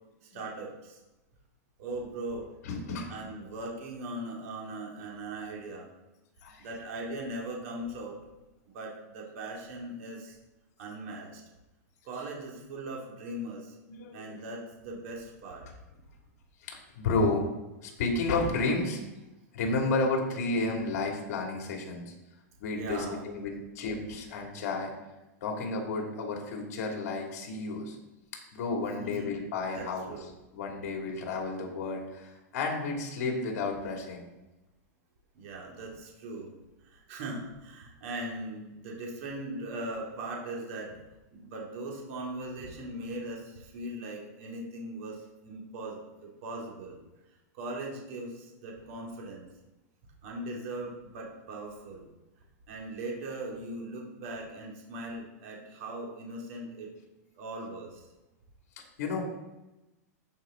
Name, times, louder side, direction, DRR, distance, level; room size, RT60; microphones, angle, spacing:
voice 1, 0.2-1.0 1.8-2.5 3.1-5.9 6.6-8.2 8.7-10.4 10.8-11.4 12.0-13.8 14.1-15.7 22.7-23.2 29.0-29.4 29.7-30.3 35.3-36.5 36.8-40.9 41.3-47.0 47.5-49.5 50.2-52.1 52.7-56.9 57.3-58.0, right 1 dB, 50° right, -2 dB, 2.5 m, -39 dB
voice 2, 2.6-3.2 6.4-6.7 13.9-14.4 16.6-17.4 17.8-19.0 19.5-22.1 22.6-24.9 25.4-28.0 28.5-30.1 30.5-34.2 58.8-59.2, left 3 dB, 65° left, 0 dB, 2.6 m, -32 dB
13.5 x 5.4 x 3.8 m, 1.0 s
supercardioid pair, 160°, 9 cm